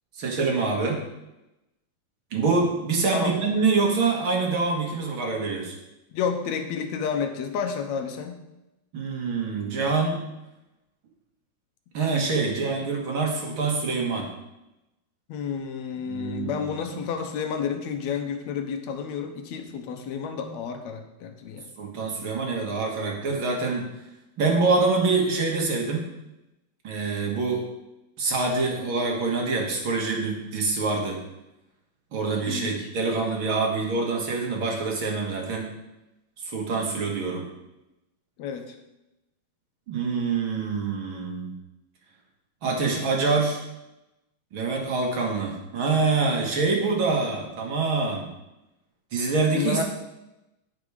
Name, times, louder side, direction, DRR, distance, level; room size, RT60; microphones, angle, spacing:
voice 1, 0.1-1.0 2.3-5.8 8.9-10.2 11.9-14.3 16.1-17.1 21.8-23.9 24.4-26.1 26.8-27.6 28.2-31.2 32.1-35.7 36.4-37.5 39.9-41.5 42.6-43.6 44.5-48.3 49.1-49.8, right 4 dB, 50° right, 0 dB, 2.1 m, -25 dB
voice 2, 6.1-8.4 12.8-12.9 15.3-21.7 32.5-32.9 38.4-38.8 49.5-49.8, left 6 dB, 70° left, 5 dB, 2.1 m, -30 dB
10.5 x 6.2 x 4.9 m, 0.94 s
omnidirectional pair, 3.5 m